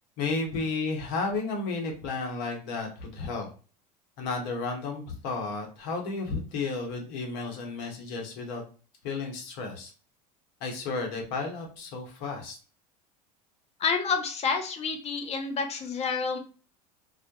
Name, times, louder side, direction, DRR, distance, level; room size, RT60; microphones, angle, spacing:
voice 1, 0.2-3.5 4.2-8.6 9.0-9.9 10.6-12.6, left 3 dB, 65° left, 2 dB, 0.9 m, -32 dB
voice 2, 13.8-16.4, left 5 dB, 30° left, 6 dB, 0.5 m, -29 dB
2.2 x 2.0 x 2.7 m, 0.37 s
hypercardioid pair, 85°, 21 cm